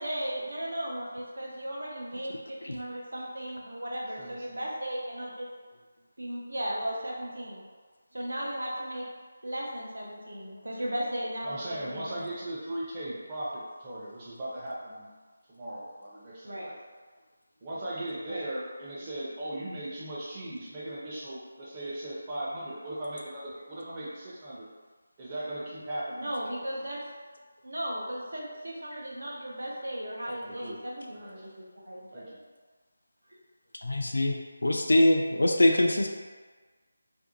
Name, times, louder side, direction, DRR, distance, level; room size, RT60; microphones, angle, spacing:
voice 1, 0.0-5.5 6.2-7.7 8.1-9.1 9.4-12.3 16.4-16.7 18.3-18.4 26.2-27.0 27.6-32.2, right 1 dB, 80° right, -3 dB, 0.7 m, -36 dB
voice 2, 4.2-4.6 11.4-15.1 15.5-16.8 17.6-24.7 25.2-26.3 30.4-30.8 31.1-31.5 32.1-32.4, right 1 dB, 25° right, -7 dB, 0.6 m, -38 dB
voice 3, 33.8-36.1, left 1 dB, 80° left, 2 dB, 0.4 m, -23 dB
2.6 x 2.1 x 2.6 m, 1.4 s
figure-of-eight pair, 160°, 0 cm